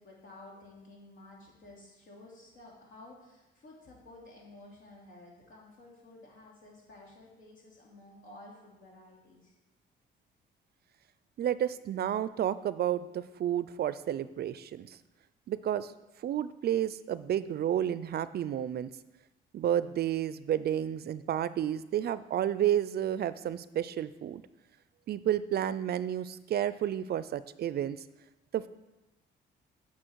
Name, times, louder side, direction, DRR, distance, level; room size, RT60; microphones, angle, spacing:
voice 1, 0.0-9.5, left 2 dB, 75° left, -3 dB, 2.9 m, -53 dB
voice 2, 11.4-15.0 15.5-15.9 16.2-18.9 19.5-24.4 25.1-28.0 28.5-28.7, right 10 dB, 55° right, 16 dB, 0.4 m, -31 dB
8.8 x 5.6 x 4.6 m, 1.0 s
cardioid pair, 90°, 20 cm